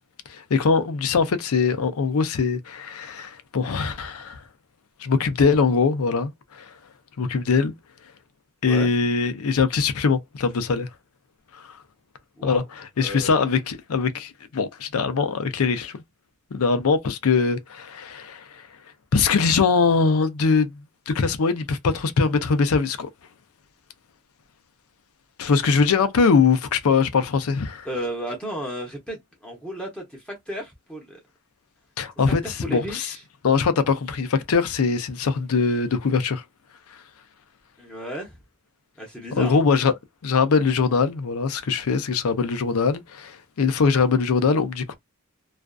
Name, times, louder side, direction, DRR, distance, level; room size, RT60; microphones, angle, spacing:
voice 1, 0.3-4.4 5.0-6.7 7.2-7.7 8.6-10.9 11.6-11.7 12.4-16.0 16.5-18.4 19.1-20.7 21.1-23.1 25.4-27.9 32.0-33.1 33.4-36.4 39.4-39.9 40.2-45.0, left 5 dB, 70° left, 0.5 m, -22 dB
voice 2, 13.0-13.4 27.8-31.2 32.4-33.2 37.8-38.4 39.0-39.6, equal, 5° left, 0.7 m, -33 dB
2.4 x 2.3 x 2.2 m
head